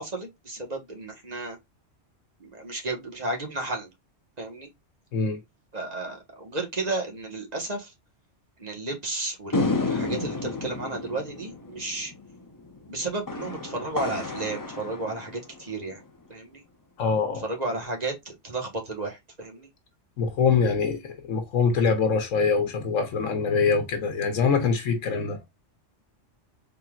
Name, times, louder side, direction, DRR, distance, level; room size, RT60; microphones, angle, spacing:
voice 1, 0.0-1.6 2.4-3.9 4.4-4.7 5.7-7.9 8.6-12.1 12.9-16.0 16.3-16.6 17.4-19.7, right 2 dB, 35° right, 1.4 m, -33 dB
sound 1, 9.5-16.0, left 3 dB, 25° left, 0.5 m, -32 dB
voice 2, 17.0-17.5 20.2-25.4, left 5 dB, 85° left, 1.2 m, -24 dB
4.2 x 3.5 x 2.3 m
omnidirectional pair, 1.3 m